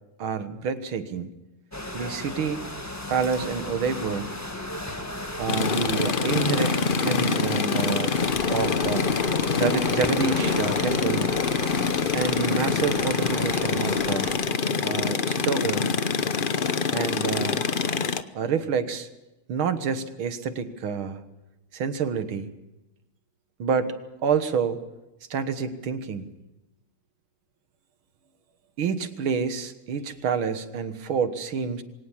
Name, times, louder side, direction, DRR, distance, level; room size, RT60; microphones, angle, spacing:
voice 1, 0.2-1.3 1.9-2.6 3.1-4.4 5.4-8.2 8.5-9.1 9.6-11.4 12.1-14.3 14.8-15.9 16.9-17.7 18.3-19.1 19.5-21.2 21.7-22.5 23.6-23.9 24.2-24.8 25.3-26.3 28.8-31.8, right 6 dB, 80° right, 10 dB, 2.2 m, -28 dB
sound 1, 1.7-14.4, left 1 dB, 10° left, 1.4 m, -36 dB
sound 2, 5.5-18.2, left 5 dB, 70° left, 0.5 m, -25 dB
sound 3, 8.2-14.4, right 3 dB, 60° right, 3.8 m, -43 dB
23.0 x 18.5 x 7.4 m, 0.98 s
omnidirectional pair, 2.3 m